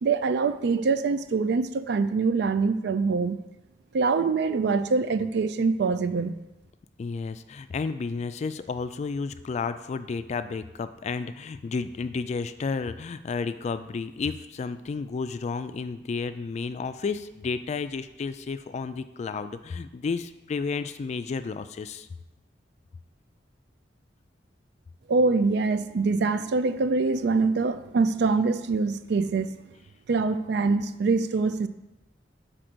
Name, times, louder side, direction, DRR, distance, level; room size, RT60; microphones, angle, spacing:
voice 1, 0.0-3.4 3.9-6.4 25.1-29.6 30.1-31.7, right 4 dB, 65° right, 12 dB, 0.4 m, -24 dB
voice 2, 7.0-22.1, left 4 dB, 40° left, 11 dB, 0.3 m, -32 dB
6.0 x 4.3 x 5.0 m, 0.96 s
head